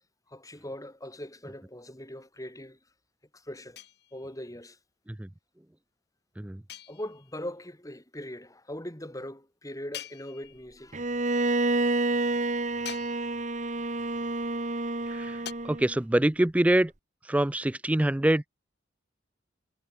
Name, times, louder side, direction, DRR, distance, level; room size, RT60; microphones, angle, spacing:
voice 1, 0.3-2.8 3.3-3.8 4.1-4.8 6.9-11.1, left 1 dB, 15° left, 6.2 m, -41 dB
sound 1, 3.8-4.5 6.7-7.5 9.9-10.9 12.8-13.6 15.5-15.6, left 10 dB, 55° left, 3.6 m, -44 dB
Bowed string instrument, 10.9-15.9, right 2 dB, 40° right, 1.4 m, -29 dB
voice 2, 15.1-16.9 17.2-18.5, right 1 dB, 5° right, 0.3 m, -25 dB
head